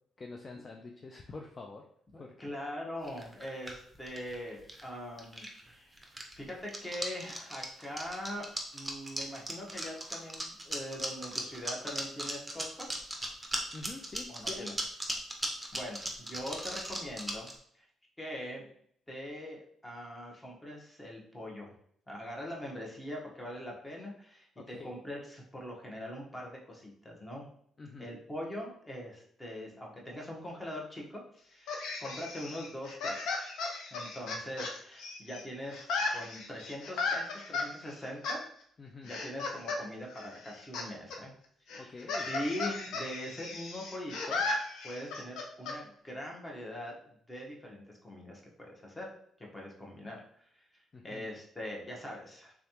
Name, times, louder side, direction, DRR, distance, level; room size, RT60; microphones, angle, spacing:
voice 1, 0.2-1.9 2.2-2.4 13.7-14.7 24.6-24.9 27.8-28.1 38.8-39.1 41.8-42.3 50.9-51.3, left 3 dB, 35° left, 2 dB, 0.4 m, -46 dB
voice 2, 2.1-12.9 14.3-14.7 15.7-17.9 18.2-18.7 19.1-21.7 22.1-27.5 28.0-33.4 33.9-38.4 39.0-41.3 41.7-41.9 42.3-44.4 44.8-49.1 49.4-52.5, equal, 15° left, -1 dB, 1.1 m, -42 dB
sound 1, 3.0-4.9 5.2-5.7 6.0-17.5, right 1 dB, 5° right, 0.8 m, -37 dB
sound 2, 31.7-35.4 35.7-37.7 38.2-38.4 39.1-39.8 40.1-40.9 41.1-41.2 41.7-45.8, left 3 dB, 85° left, 0.6 m, -36 dB
3.5 x 3.2 x 2.9 m, 0.65 s
cardioid pair, 90°, 0 cm